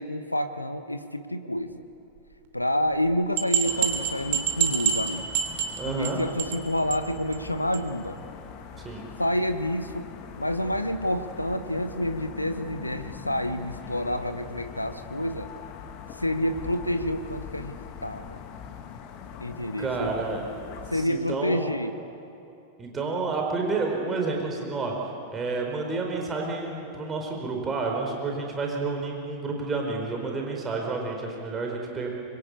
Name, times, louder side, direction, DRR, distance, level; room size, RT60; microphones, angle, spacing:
voice 1, 0.0-1.8 2.5-5.3 5.9-8.2 9.2-10.1 10.4-15.5 16.2-17.8 18.0-18.4 19.4-20.1 20.9-22.0, left 1 dB, 85° left, 9 dB, 1.1 m, -28 dB
sound 1, 3.4-6.1 6.4-6.6 6.9-7.0 7.3-7.4 7.7-7.8, right 9 dB, 50° right, 2.9 m, -26 dB
sound 2, 3.6-21.1, left 7 dB, 40° left, 2.0 m, -42 dB
voice 2, 5.8-6.2 8.8-9.0 19.8-20.4 20.9-21.7 22.8-24.9 25.3-32.1, right 3 dB, 20° right, 0 dB, 4.4 m, -30 dB
25.5 x 24.0 x 8.4 m, 2.7 s
figure-of-eight pair, 90°, 0 cm